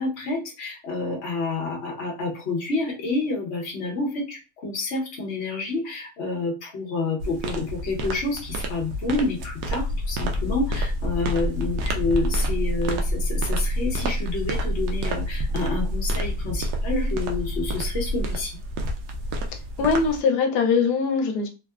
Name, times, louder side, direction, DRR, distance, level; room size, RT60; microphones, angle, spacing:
voice 1, 0.0-18.6, left 3 dB, 50° left, -1 dB, 1.1 m, -29 dB
sound 1, 7.2-20.2, right 1 dB, 80° right, 1.1 m, -31 dB
sound 2, 9.7-18.4, equal, 65° left, 1.3 m, -28 dB
voice 2, 19.8-21.5, left 5 dB, 90° left, 4 dB, 1.2 m, -22 dB
3.5 x 2.1 x 2.3 m, 0.30 s
omnidirectional pair, 1.7 m